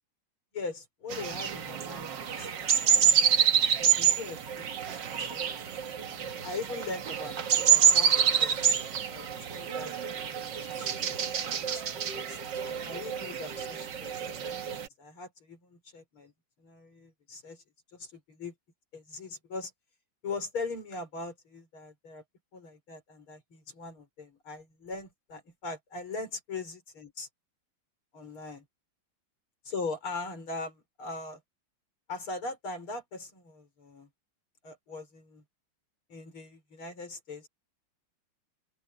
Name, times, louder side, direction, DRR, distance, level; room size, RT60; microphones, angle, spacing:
voice 1, 0.5-2.5 2.8-3.1 3.8-5.5 6.1-8.6 9.1-11.1 11.5-11.8 12.1-14.7 15.0-16.3 16.6-17.6 17.9-18.5 18.9-19.7 20.2-22.2 22.5-27.3 28.1-28.7 29.7-31.4 32.1-34.1 34.6-35.4 36.1-37.5, left 3 dB, 90° left, 6.3 m, -41 dB
sound 1, 1.1-14.9, right 8 dB, 60° right, 2.0 m, -27 dB
omnidirectional pair, 2.3 m